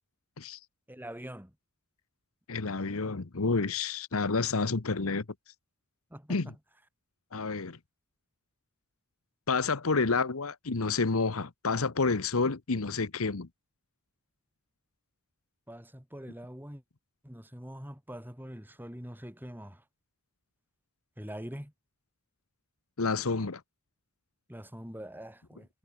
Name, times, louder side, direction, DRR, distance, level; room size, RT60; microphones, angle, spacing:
voice 1, 0.9-1.5 6.1-6.4 15.7-16.8 17.2-19.8 21.2-21.7 24.5-25.7, equal, 10° right, 6.8 m, -43 dB
voice 2, 2.5-5.2 6.3-6.5 7.3-7.8 9.5-13.5 23.0-23.6, left 4 dB, 70° left, 1.1 m, -29 dB
head